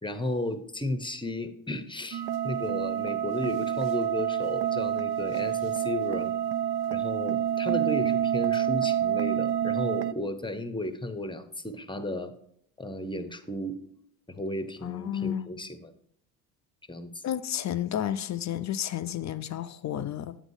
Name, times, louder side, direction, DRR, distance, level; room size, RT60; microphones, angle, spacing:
voice 1, 0.0-6.3 6.9-12.3 12.8-13.8 14.3-15.9 16.9-17.2, left 1 dB, 10° left, 0.7 m, -34 dB
sound 1, 2.1-10.1, right 10 dB, 55° right, 0.5 m, -28 dB
voice 2, 14.8-15.4 17.2-20.4, left 10 dB, 35° left, 0.5 m, -31 dB
9.0 x 8.1 x 2.7 m
hypercardioid pair, 55°, 48 cm